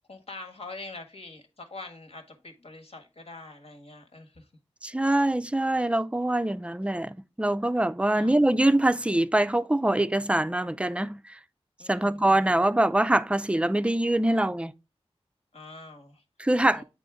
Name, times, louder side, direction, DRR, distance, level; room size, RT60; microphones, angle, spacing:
voice 1, 0.1-4.5 8.0-8.5 11.8-12.6 15.5-16.2 16.7-16.8, left 2 dB, 65° left, 1.4 m, -44 dB
voice 2, 4.8-11.4 11.9-14.7 16.4-16.8, right 1 dB, 10° right, 0.4 m, -24 dB
8.3 x 4.0 x 3.6 m
wide cardioid pair, 80°, 11 cm